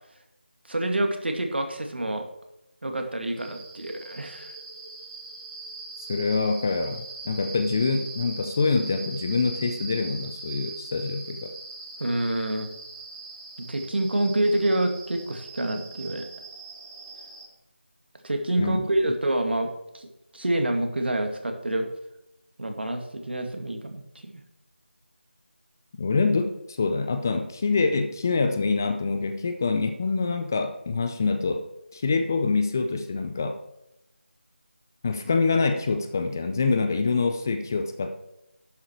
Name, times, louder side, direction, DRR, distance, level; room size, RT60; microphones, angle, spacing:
voice 1, 0.7-2.3 2.8-4.5 12.0-12.7 13.7-16.3 18.2-20.1 20.3-21.9 22.6-24.4, right 1 dB, 65° right, 5 dB, 2.3 m, -27 dB
sound 1, 3.4-17.5, right 3 dB, 25° right, 3.7 m, -41 dB
voice 2, 6.1-11.5 18.6-18.8 26.0-31.6 31.9-33.6 35.0-38.1, left 4 dB, 15° left, 8 dB, 0.5 m, -25 dB
11.5 x 7.7 x 4.5 m, 0.89 s
figure-of-eight pair, 170°, 6 cm